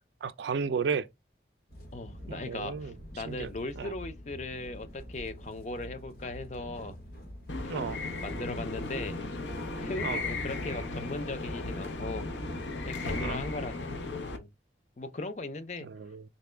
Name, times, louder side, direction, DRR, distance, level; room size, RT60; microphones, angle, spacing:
voice 1, 0.2-1.1 2.3-2.9 3.3-3.5 3.8-3.9 7.7-8.0 10.0-10.2 13.2-13.4 15.8-16.2, right 5 dB, 75° right, 0.4 m, -33 dB
sound 1, 1.7-12.8, equal, 55° left, 1.3 m, -46 dB
voice 2, 1.9-7.0 7.6-7.9 8.2-9.2 9.8-12.3 12.9-14.0 14.3-14.5 15.0-15.9, left 2 dB, 40° left, 0.5 m, -38 dB
sound 2, 7.5-14.4, left 2 dB, 90° left, 0.7 m, -36 dB
4.0 x 2.2 x 3.2 m
head